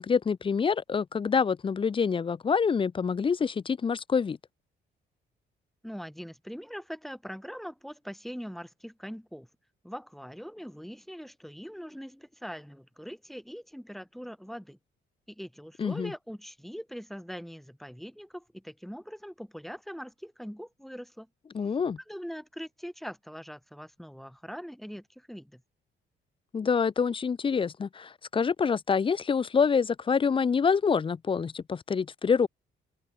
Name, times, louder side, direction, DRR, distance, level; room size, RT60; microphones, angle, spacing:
voice 1, 0.0-4.4 15.8-16.1 21.5-22.0 26.5-32.5, left 6 dB, 25° left, 0.5 m, -26 dB
voice 2, 5.8-9.5 9.8-14.8 15.3-21.3 22.1-25.6, equal, ahead, 1.5 m, -42 dB
cardioid pair, 90°, 20 cm